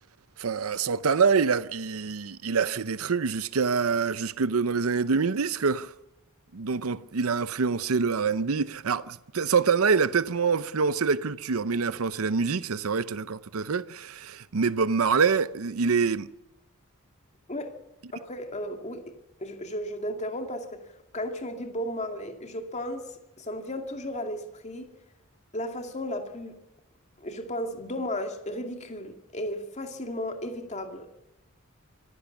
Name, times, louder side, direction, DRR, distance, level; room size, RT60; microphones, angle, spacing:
voice 1, 0.4-5.9 6.5-16.3, right 5 dB, 90° right, 0.7 m, -26 dB
voice 2, 18.1-19.1 19.4-20.8 21.1-24.9 25.5-26.6 27.2-31.1, left 1 dB, 35° left, 2.4 m, -34 dB
25.5 x 15.5 x 7.2 m
head